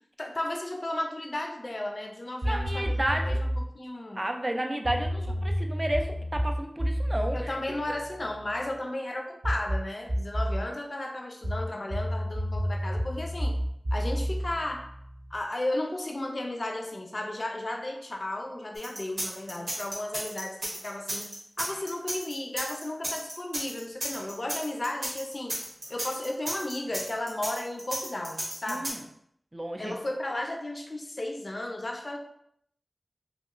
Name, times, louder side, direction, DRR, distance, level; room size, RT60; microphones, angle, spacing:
voice 1, 0.2-4.2 5.4-5.5 7.3-13.5 13.9-14.9 15.3-21.3 21.6-25.6 25.9-28.9 29.8-32.2, left 1 dB, 50° left, 3 dB, 0.4 m, -34 dB
voice 2, 2.4-3.4 4.2-7.6 28.7-29.0 29.5-29.9, right 1 dB, 30° right, 3 dB, 0.4 m, -32 dB
sound 1, 2.4-3.7 4.8-8.6 9.4-10.7 11.4-15.4, equal, 65° right, 0.7 m, -30 dB
sound 2, 18.7-28.9, right 1 dB, 90° right, 0.9 m, -34 dB
2.9 x 2.8 x 2.5 m, 0.73 s
wide cardioid pair, 55°, 0 cm